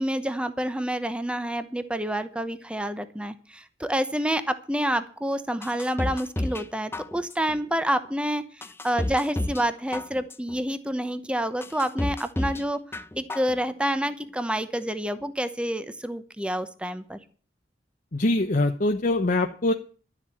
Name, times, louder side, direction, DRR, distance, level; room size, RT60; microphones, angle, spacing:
voice 1, 0.0-12.8 13.2-17.2, right 1 dB, 5° right, 11 dB, 0.9 m, -28 dB
sound 1, 5.6-6.7 6.9-7.6 8.1-8.2 8.6-9.7 9.9-10.6 11.1-11.2 11.6-12.6 12.9-13.6 13.9-14.0, left 1 dB, 15° left, 0.5 m, -31 dB
voice 2, 18.1-19.7, left 2 dB, 45° left, 3 dB, 0.9 m, -23 dB
12.0 x 7.5 x 8.3 m, 0.40 s
head